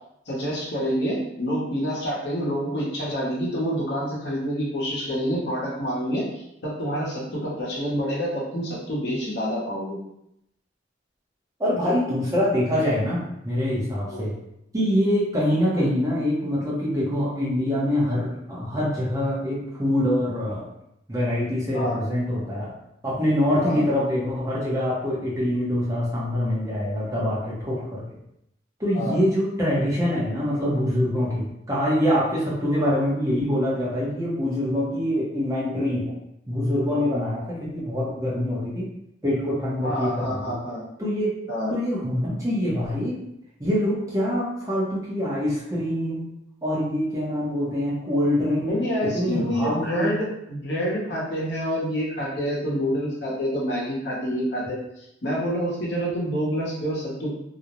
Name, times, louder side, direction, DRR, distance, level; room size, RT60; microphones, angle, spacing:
voice 1, 0.3-6.3 6.6-10.0 14.1-14.3 21.7-22.0 23.6-23.8 28.9-29.2 39.8-40.8 41.5-41.7 48.7-57.3, equal, 65° left, -5 dB, 0.8 m, -27 dB
voice 2, 11.6-14.4 14.7-20.7 21.1-22.7 23.0-28.0 28.8-36.1 36.5-38.9 39.2-40.6 41.0-41.4 41.7-43.2 43.6-46.2 46.6-48.8 49.0-50.1, equal, 15° right, -7 dB, 0.6 m, -24 dB
2.4 x 2.0 x 2.9 m, 0.80 s
head